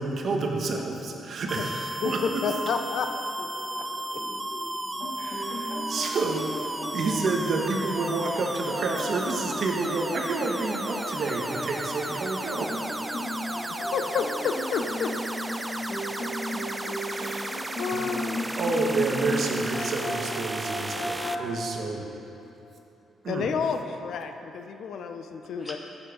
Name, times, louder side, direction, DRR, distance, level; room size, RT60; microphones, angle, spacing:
voice 1, 0.0-2.2 5.2-6.4 6.9-12.8 17.0-17.5 17.9-18.1 18.6-22.0 23.2-23.4, right 3 dB, 50° right, 1 dB, 1.4 m, -29 dB
sound 1, 1.5-21.4, right 1 dB, 10° right, 0.4 m, -34 dB
voice 2, 2.0-3.1 3.4-3.5 13.7-15.1 17.8-18.4 19.8-19.9 23.3-25.8, left 6 dB, 65° left, 7 dB, 0.6 m, -30 dB
voice 3, 3.6-5.3 25.6-25.8, left 2 dB, 15° left, 0 dB, 1.4 m, -45 dB
sound 2, 5.0-21.5, left 1 dB, 35° left, 1.7 m, -35 dB
14.5 x 7.3 x 5.1 m, 2.9 s
cardioid pair, 135°, 0 cm